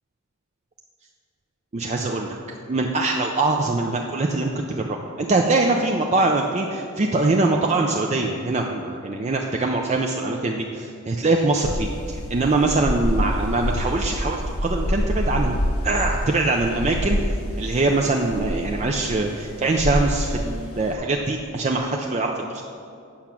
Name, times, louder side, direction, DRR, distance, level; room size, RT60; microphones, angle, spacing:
voice 1, 1.7-2.4 2.7-15.6 15.8-22.6, right 2 dB, 30° right, 1 dB, 0.4 m, -23 dB
sound 1, 11.6-20.9, equal, 85° left, 0.9 m, -27 dB
8.7 x 6.0 x 5.8 m, 2.6 s
head